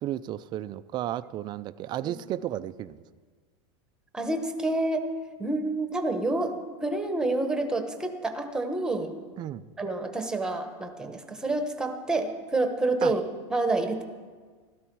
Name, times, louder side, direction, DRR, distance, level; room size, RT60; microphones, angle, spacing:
voice 1, 0.0-3.0 9.4-9.7 13.0-13.1, right 12 dB, 30° right, 13 dB, 0.4 m, -33 dB
voice 2, 4.1-5.1 5.4-6.6 6.8-9.1 9.8-13.2 13.5-14.0, right 2 dB, 5° right, 5 dB, 1.1 m, -28 dB
16.0 x 13.0 x 4.7 m, 1.5 s
supercardioid pair, 145°, 16 cm